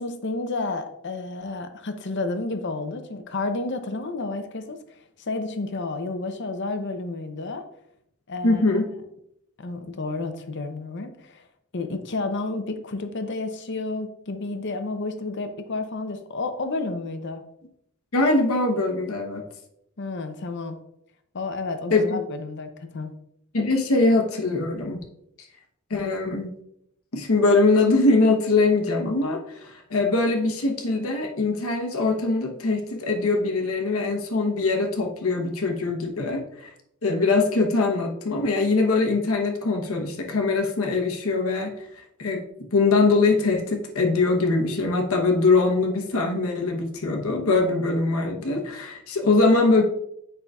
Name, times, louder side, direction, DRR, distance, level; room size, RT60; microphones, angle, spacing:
voice 1, 0.0-7.6 8.3-8.8 9.6-11.5 11.7-17.4 20.0-20.8 21.3-23.2, left 3 dB, 55° left, 8 dB, 0.7 m, -31 dB
voice 2, 8.4-8.8 18.1-19.4 21.9-22.2 23.5-25.0 25.9-26.5 27.1-36.7 37.0-41.9 42.2-49.8, left 3 dB, 75° left, 3 dB, 1.0 m, -22 dB
7.8 x 5.6 x 2.4 m, 0.76 s
head